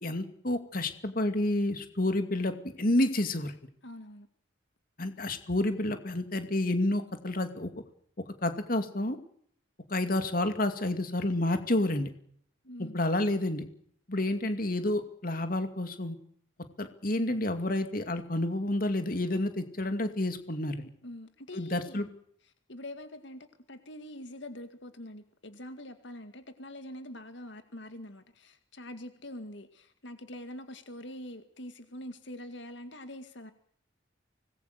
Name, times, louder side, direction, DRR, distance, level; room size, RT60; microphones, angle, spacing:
voice 1, 0.0-3.5 5.0-7.7 8.4-9.2 9.9-12.1 12.8-13.7 14.1-16.2 16.8-20.9 21.5-22.1, left 1 dB, 45° left, 2.4 m, -29 dB
voice 2, 3.8-4.3 12.6-13.0 21.0-22.1 22.7-33.5, left 1 dB, 65° left, 2.1 m, -44 dB
25.5 x 20.0 x 6.7 m
head